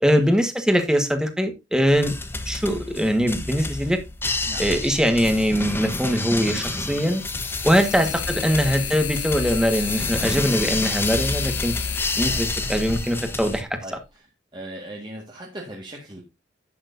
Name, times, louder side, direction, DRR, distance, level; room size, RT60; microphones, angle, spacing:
voice 1, 0.0-2.1 2.4-4.0 4.6-7.2 7.6-11.7 12.2-14.0, equal, 5° right, 1.4 m, -22 dB
sound 1, 1.9-13.6, left 2 dB, 10° left, 1.1 m, -29 dB
sound 2, 4.7-4.8 6.1-14.0, left 9 dB, 80° left, 1.1 m, -33 dB
voice 2, 8.5-8.9 12.2-12.7 13.8-14.0 14.5-16.2, right 1 dB, 25° right, 1.8 m, -39 dB
11.0 x 8.7 x 2.7 m
head